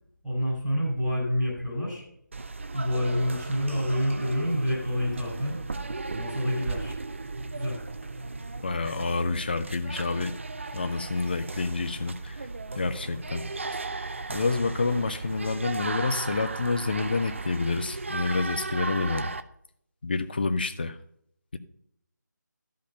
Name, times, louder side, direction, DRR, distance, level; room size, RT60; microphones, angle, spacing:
voice 1, 0.2-2.0 2.7-5.6 6.1-6.9 7.5-7.8, equal, ahead, -15 dB, 4.8 m, -28 dB
sound 1, 2.3-19.4, right 3 dB, 40° right, 0.5 m, -36 dB
voice 2, 8.6-10.4 10.7-12.5 12.8-13.4 14.3-19.3 20.0-21.0, left 3 dB, 30° left, 10 dB, 0.5 m, -28 dB
12.0 x 5.5 x 5.4 m, 0.71 s
figure-of-eight pair, 160°, 10 cm